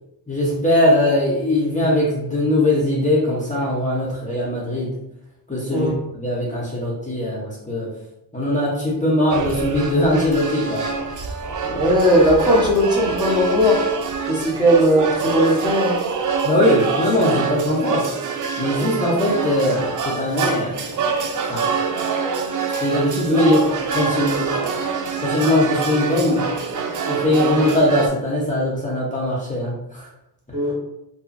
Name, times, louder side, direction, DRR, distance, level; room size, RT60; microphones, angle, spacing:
voice 1, 0.3-4.9 5.5-7.9 8.3-10.8 16.4-18.0 18.6-21.0 21.5-21.6 22.8-24.5 25.2-26.5 27.0-30.1, left 1 dB, 15° left, -6 dB, 0.8 m, -20 dB
sound 1, 9.3-28.1, right 5 dB, 40° right, 0.5 m, -25 dB
voice 2, 11.7-13.8 14.3-16.0 30.5-30.7, equal, 10° right, -4 dB, 1.0 m, -17 dB
2.8 x 2.3 x 2.6 m, 0.85 s
supercardioid pair, 55°, 48 cm